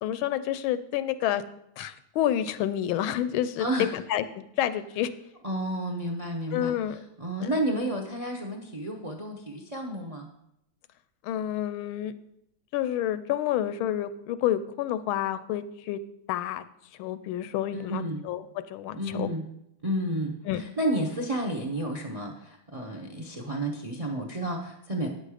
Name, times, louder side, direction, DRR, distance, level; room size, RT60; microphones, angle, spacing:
voice 1, 0.0-1.4 1.8-5.1 6.5-7.0 11.2-12.1 12.7-16.0 16.3-16.6 17.0-19.3 20.4-20.6, left 11 dB, 90° left, 13 dB, 1.4 m, -29 dB
voice 2, 3.6-3.9 5.4-6.7 7.2-10.3 17.7-18.2 18.9-19.4 19.8-25.1, right 1 dB, 50° right, 3 dB, 0.4 m, -31 dB
9.4 x 6.6 x 4.9 m, 0.80 s
omnidirectional pair, 2.2 m